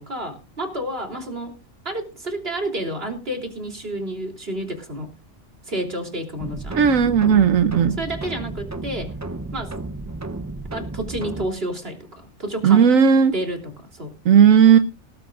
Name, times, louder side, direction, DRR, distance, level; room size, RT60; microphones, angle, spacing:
voice 1, 0.0-1.5 1.9-5.1 5.7-6.8 8.0-9.1 9.5-9.7 10.7-12.8 13.3-14.1, right 1 dB, 50° right, 3 dB, 3.6 m, -30 dB
sound 1, 6.4-11.5, right 2 dB, 20° right, 0.5 m, -33 dB
voice 2, 6.7-8.0 12.6-13.3 14.3-14.8, right 7 dB, 85° right, 9 dB, 1.3 m, -14 dB
19.5 x 13.0 x 2.5 m, 0.31 s
omnidirectional pair, 1.3 m